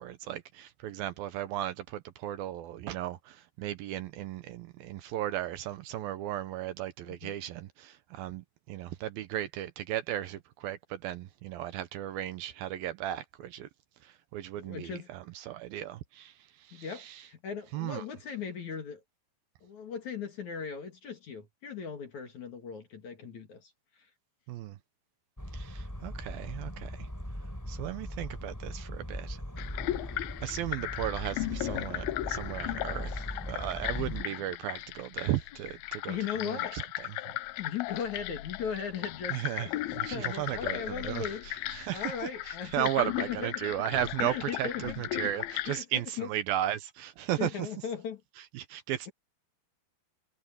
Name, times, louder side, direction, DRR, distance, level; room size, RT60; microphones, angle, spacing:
voice 1, 0.0-13.7 14.0-16.3 16.7-17.2 17.7-18.0 24.5-24.8 25.5-26.9 27.7-29.4 30.4-36.2 36.4-37.1 39.3-39.7 40.0-41.3 41.7-42.1 42.5-47.5 48.6-49.1, right 12 dB, 75° right, 2.2 m, -35 dB
voice 2, 14.6-15.1 16.7-19.0 19.6-23.7 24.0-24.1 30.1-30.2 36.1-36.8 37.6-41.5 41.9-43.8 44.2-45.3 45.7-46.3 47.4-48.2, left 7 dB, 50° left, 3.0 m, -38 dB
sound 1, 25.4-34.2, equal, 5° left, 6.7 m, -39 dB
sound 2, 29.6-45.8, left 16 dB, 85° left, 2.1 m, -37 dB
omnidirectional pair, 5.2 m